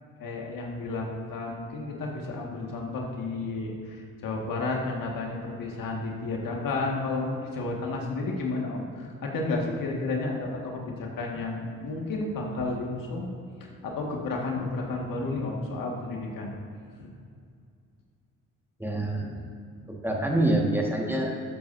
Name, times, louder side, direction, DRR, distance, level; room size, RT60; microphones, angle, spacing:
voice 1, 0.2-13.3 13.6-16.5 17.0-17.1, left 3 dB, 70° left, -1 dB, 1.8 m, -32 dB
voice 2, 18.8-19.4 19.9-21.4, right 1 dB, 5° right, -1 dB, 1.6 m, -26 dB
13.0 x 8.5 x 2.7 m, 2.3 s
cardioid pair, 90°, 34 cm